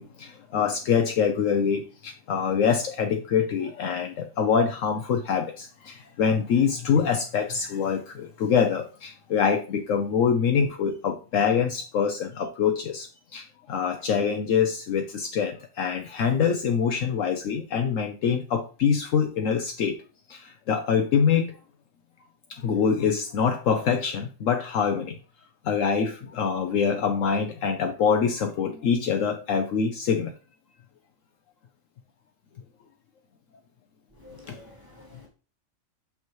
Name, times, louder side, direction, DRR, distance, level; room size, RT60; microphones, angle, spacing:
voice 1, 0.0-20.0 20.3-21.6 22.5-25.2 25.6-30.3 34.5-34.6, left 6 dB, 70° left, 1.0 m, -25 dB
voice 2, 34.2-35.3, left 2 dB, 15° right, 2.3 m, -49 dB
6.4 x 5.5 x 3.0 m
omnidirectional pair, 1.4 m